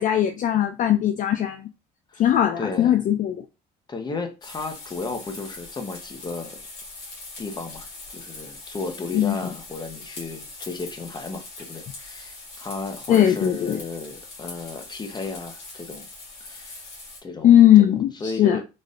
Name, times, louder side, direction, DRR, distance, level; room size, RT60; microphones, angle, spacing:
voice 1, 0.0-1.7 2.2-3.4 9.1-9.4 13.1-13.8 17.4-18.6, left 11 dB, 50° left, 0.4 m, -18 dB
voice 2, 2.6-2.9 3.9-6.6 7.4-16.1 16.4-16.8 17.2-17.9 18.1-18.6, left 3 dB, 25° left, 0.8 m, -34 dB
sound 1, 4.4-17.2, left 2 dB, 70° left, 2.0 m, -41 dB
4.1 x 3.2 x 2.5 m
cardioid pair, 110°, 17 cm